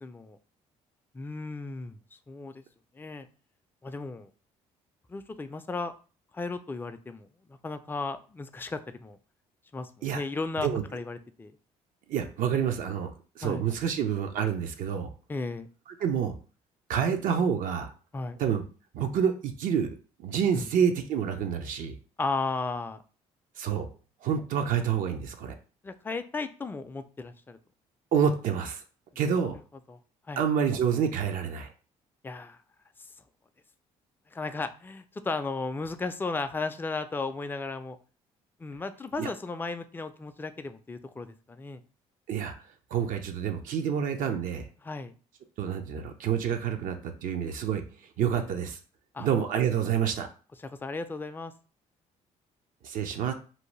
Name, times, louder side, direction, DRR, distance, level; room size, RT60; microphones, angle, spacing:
voice 1, 0.0-0.4 1.1-2.0 2.3-2.6 3.0-3.3 3.8-4.3 5.1-5.9 6.3-9.2 9.7-11.5 13.4-13.6 15.3-15.7 18.1-18.4 20.5-20.7 22.2-23.0 25.8-27.6 29.9-30.0 30.3-30.4 32.2-32.6 34.3-38.0 38.6-41.8 44.8-45.1 48.4-48.5 49.1-49.3 50.6-51.5, left 3 dB, 15° left, 9 dB, 0.3 m, -35 dB
voice 2, 12.1-13.1 13.4-15.1 16.0-16.3 16.9-17.9 18.4-18.6 18.9-21.9 23.6-23.9 24.2-25.5 28.1-28.8 29.2-29.5 30.4-31.7 39.2-39.3 42.3-42.5 42.9-44.7 45.6-47.8 48.2-48.8 49.2-50.3 52.8-53.3, right 8 dB, 65° right, 6 dB, 0.5 m, -28 dB
2.7 x 2.1 x 3.1 m, 0.37 s
supercardioid pair, 65°, 15 cm